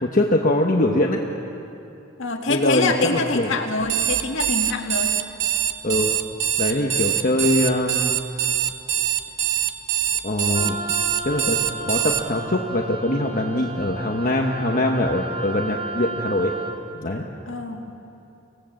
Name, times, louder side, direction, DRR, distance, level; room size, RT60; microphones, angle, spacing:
voice 1, 0.0-1.2 2.5-3.5 5.8-6.2 6.6-8.2 10.2-10.8 11.2-16.5 17.0-17.2, left 1 dB, 40° left, 1 dB, 1.2 m, -22 dB
voice 2, 2.2-5.2 17.5-17.9, left 3 dB, 65° left, 3 dB, 2.0 m, -25 dB
Alarm, 3.8-12.2, right 11 dB, 55° right, 1.0 m, -23 dB
Wind instrument woodwind instrument, 10.5-16.8, right 2 dB, 30° right, 2.2 m, -33 dB
26.5 x 17.5 x 7.8 m, 2.8 s
head